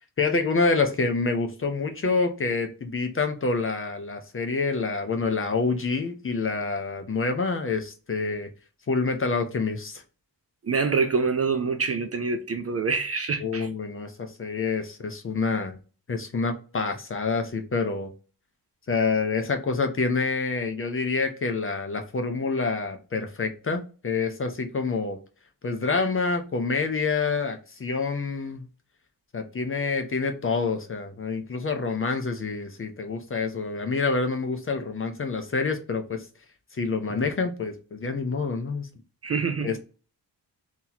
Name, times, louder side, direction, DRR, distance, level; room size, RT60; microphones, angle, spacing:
voice 1, 0.2-8.5 8.9-10.0 13.4-15.8 16.1-18.1 18.9-25.2 25.6-28.7 29.3-36.2 36.8-38.9 39.6-39.8, left 4 dB, 30° left, 0.5 m, -27 dB
voice 2, 10.6-13.7 39.2-39.7, right 4 dB, 35° right, 0.4 m, -26 dB
2.8 x 2.8 x 3.9 m
wide cardioid pair, 155°, 41 cm